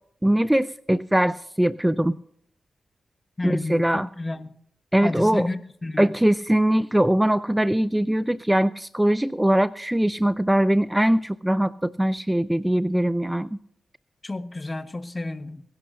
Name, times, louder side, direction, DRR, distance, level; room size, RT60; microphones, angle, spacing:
voice 1, 0.2-2.2 3.4-4.1 4.9-5.5 6.0-13.5, right 1 dB, 10° right, 15 dB, 0.5 m, -21 dB
voice 2, 3.4-4.5 5.0-6.1 14.2-15.6, left 2 dB, 30° left, 10 dB, 1.3 m, -30 dB
23.0 x 11.5 x 2.7 m, 0.66 s
cardioid pair, 55°, 0 cm